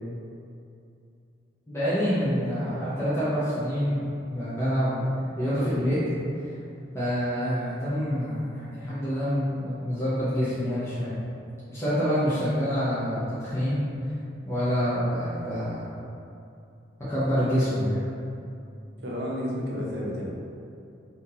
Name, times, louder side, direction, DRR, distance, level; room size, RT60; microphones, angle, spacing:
voice 1, 1.7-4.0 4.3-5.1 5.4-6.0 6.4-6.5 6.9-11.2 11.7-13.8 14.5-15.8 17.1-18.0, equal, 15° left, -13 dB, 0.7 m, -26 dB
voice 2, 19.0-20.2, equal, 65° right, -4 dB, 0.7 m, -31 dB
2.8 x 2.6 x 3.8 m, 2.6 s
head